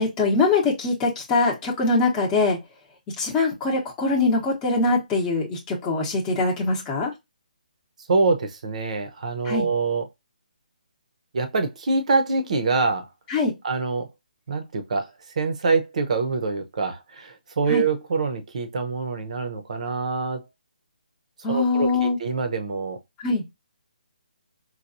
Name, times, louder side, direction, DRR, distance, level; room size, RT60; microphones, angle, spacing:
voice 1, 0.0-2.6 3.2-7.1 9.4-9.7 13.3-13.5 17.7-17.9 21.4-22.2 23.2-23.4, left 3 dB, 10° left, 0.8 m, -22 dB
voice 2, 8.1-10.0 11.3-13.1 13.6-14.1 14.5-15.1 15.4-20.4 21.5-23.0, right 4 dB, 50° right, 0.8 m, -25 dB
4.6 x 2.3 x 2.5 m
hypercardioid pair, 165°, 5 cm